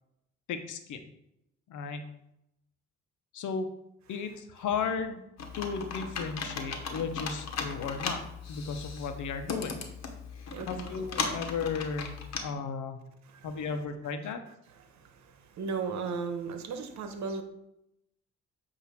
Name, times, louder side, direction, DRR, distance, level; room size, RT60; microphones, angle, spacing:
voice 1, 0.5-1.0 1.7-2.0 3.3-3.7 4.1-5.2 5.5-8.2 8.5-9.8 10.7-13.0 13.4-14.4, left 5 dB, 80° left, 7 dB, 1.0 m, -34 dB
Computer keyboard, 5.4-12.4, left 5 dB, 60° left, 1.2 m, -37 dB
voice 2, 10.5-10.9 13.3-13.5 14.8-17.4, right 5 dB, 65° right, 7 dB, 1.2 m, -36 dB
8.6 x 2.9 x 5.9 m, 0.83 s
cardioid pair, 90°, 30 cm